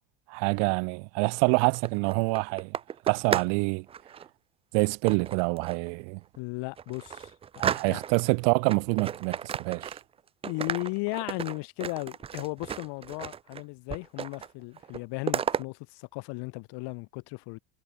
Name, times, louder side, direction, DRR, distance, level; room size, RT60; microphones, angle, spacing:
voice 1, 0.3-2.7 3.0-3.9 4.7-6.2 7.6-10.0, right 40 dB or more, 70° right, 0.6 m, -26 dB
sound 1, 1.6-3.6 3.9-4.3 5.1-5.9 6.3-6.4 6.8-8.3 8.7-10.2 10.4-13.6 13.9-14.5 14.8-15.6, right 8 dB, 15° right, 0.4 m, -34 dB
voice 2, 6.4-7.3 7.9-8.0 10.4-17.6, left 27 dB, 60° left, 5.6 m, -36 dB
cardioid pair, 180°, 45 cm